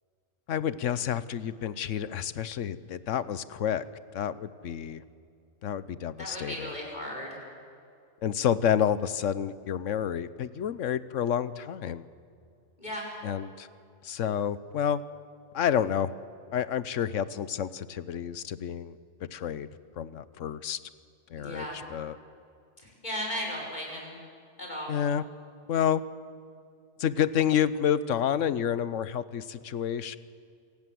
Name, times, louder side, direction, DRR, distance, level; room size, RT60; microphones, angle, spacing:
voice 1, 0.5-3.8 4.1-5.0 5.6-6.7 8.2-12.1 13.2-13.7 14.0-15.0 15.5-16.1 16.5-19.0 19.3-19.7 20.0-20.8 21.3-22.2 24.9-25.2 25.7-26.0 27.0-30.2, left 9 dB, 80° left, 16 dB, 1.2 m, -29 dB
voice 2, 6.2-7.3 12.8-13.1 21.4-21.8 22.8-24.1 24.6-24.9, equal, 35° left, -1 dB, 5.8 m, -36 dB
27.0 x 18.0 x 7.7 m, 2.3 s
omnidirectional pair, 1.3 m